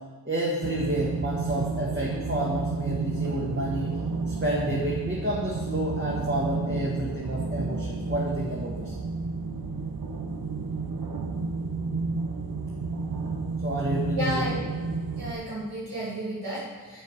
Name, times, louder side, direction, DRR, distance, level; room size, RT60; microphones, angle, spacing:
voice 1, 0.3-4.0 4.3-8.9 13.6-14.5, right 1 dB, 30° right, -5 dB, 1.7 m, -30 dB
sound 1, 0.6-15.3, right 4 dB, 65° right, 0.8 m, -31 dB
voice 2, 14.2-14.6 15.2-17.0, equal, 85° right, -10 dB, 2.7 m, -32 dB
7.6 x 7.1 x 5.8 m, 1.4 s
wide cardioid pair, 50°, 37 cm